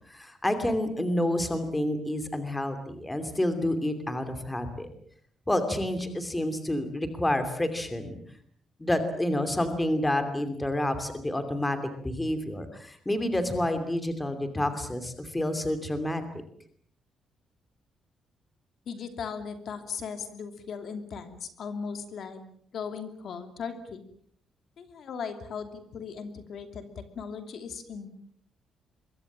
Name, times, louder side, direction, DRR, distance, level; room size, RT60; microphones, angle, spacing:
voice 1, 0.1-4.9 5.5-8.2 8.8-11.8 12.0-16.2, left 1 dB, 10° left, 8 dB, 2.8 m, -29 dB
voice 2, 18.9-22.4 22.7-24.0 24.8-28.1, left 6 dB, 50° left, 8 dB, 2.8 m, -38 dB
25.5 x 23.0 x 7.4 m, 0.62 s
cardioid pair, 180°, 0 cm